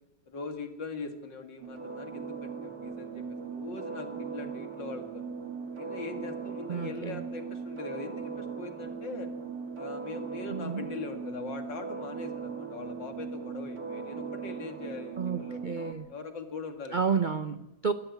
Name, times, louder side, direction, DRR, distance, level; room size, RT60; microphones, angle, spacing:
voice 1, 0.3-5.2 5.7-9.3 9.8-15.6 16.1-17.2, left 4 dB, 65° left, 6 dB, 2.7 m, -41 dB
sound 1, 1.6-15.9, right 5 dB, 50° right, 2.1 m, -39 dB
voice 2, 6.7-7.2 10.5-10.9 15.2-16.1 16.9-17.9, right 6 dB, 90° right, 10 dB, 0.4 m, -31 dB
21.0 x 14.0 x 9.6 m, 0.99 s
omnidirectional pair, 2.1 m